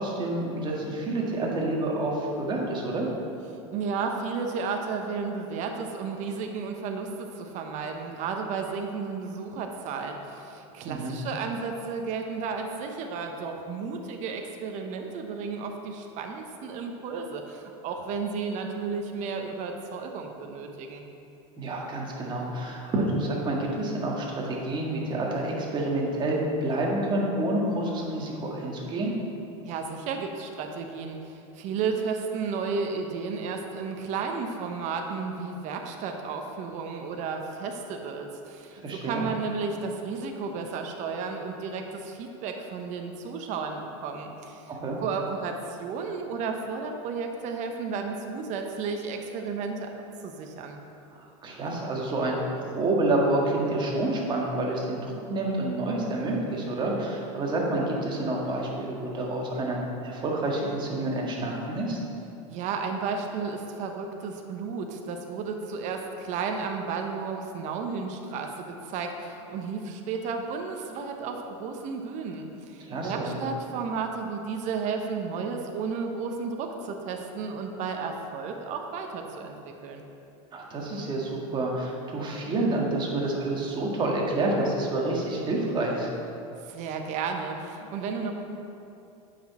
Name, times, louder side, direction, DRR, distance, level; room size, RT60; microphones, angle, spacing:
voice 1, 0.0-3.1 10.8-11.2 21.6-29.1 38.7-39.2 44.8-45.0 51.1-62.0 72.9-73.4 80.5-86.1, right 2 dB, 25° right, -2 dB, 1.7 m, -28 dB
voice 2, 3.7-21.0 29.6-44.7 45.0-49.9 50.2-50.8 62.5-80.0 86.6-88.3, right 5 dB, 45° right, 3 dB, 0.9 m, -33 dB
8.4 x 6.1 x 4.2 m, 2.7 s
supercardioid pair, 120°, 17 cm